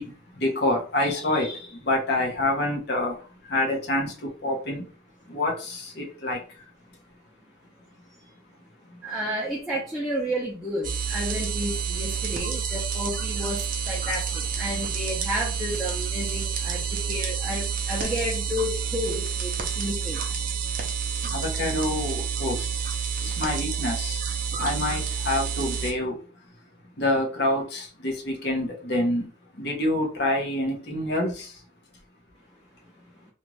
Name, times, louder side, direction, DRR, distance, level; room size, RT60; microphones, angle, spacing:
voice 1, 0.0-4.9 5.3-6.7 8.9-9.0 21.3-22.8 23.2-24.3 24.6-26.5 27.0-31.6, left 1 dB, 55° left, -1 dB, 0.9 m, -27 dB
voice 2, 9.0-13.6 13.9-20.2, equal, ahead, -6 dB, 0.6 m, -31 dB
sound 1, 10.8-25.9, right 6 dB, 40° right, 0.5 m, -29 dB
2.6 x 2.4 x 3.0 m, 0.38 s
head